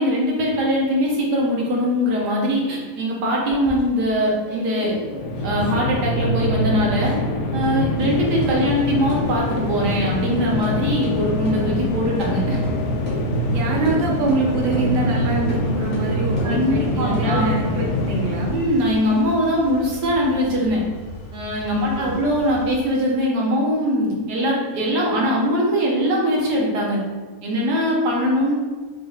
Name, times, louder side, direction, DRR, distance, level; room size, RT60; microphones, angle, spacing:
voice 1, 0.0-5.0 5.4-7.2 7.5-12.6 16.4-17.4 18.5-20.8 21.3-27.0 27.4-28.5, equal, 80° right, -3 dB, 1.6 m, -21 dB
sound 1, 3.5-6.3 6.5-7.3 7.6-7.7 8.0-8.1 8.4-8.5 9.1-9.2 9.5-9.6 9.9-10.0 10.3-10.7 11.0-11.1 11.5-11.6 12.2-12.3 12.6-12.7 13.1-13.2 13.9-14.0 14.3-14.4 14.7-14.9 15.5-15.6 15.9-16.5 17.0-18.6, left 1 dB, 25° left, 1.4 m, -37 dB
sound 2, 5.0-18.9, left 1 dB, 85° left, 1.2 m, -24 dB
sound 3, 8.0-23.1, equal, 70° left, 1.7 m, -38 dB
voice 2, 13.5-18.6 21.7-22.2, right 3 dB, 45° right, -2 dB, 0.9 m, -25 dB
5.4 x 3.7 x 2.4 m, 1.4 s
omnidirectional pair, 1.8 m